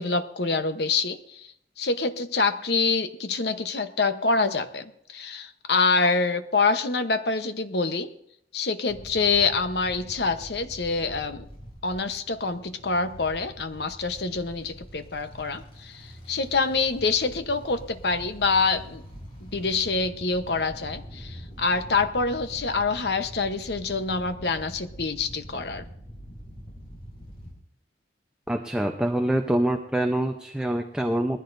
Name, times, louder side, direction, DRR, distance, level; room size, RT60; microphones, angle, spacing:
voice 1, 0.0-8.1 8.5-11.5 11.8-19.0 19.4-25.8, left 4 dB, 75° left, 9 dB, 1.0 m, -26 dB
sound 1, 8.9-27.5, equal, 30° left, 4.9 m, -44 dB
voice 2, 28.5-31.4, right 1 dB, 5° right, 3 dB, 0.7 m, -25 dB
20.5 x 15.0 x 2.7 m, 0.74 s
head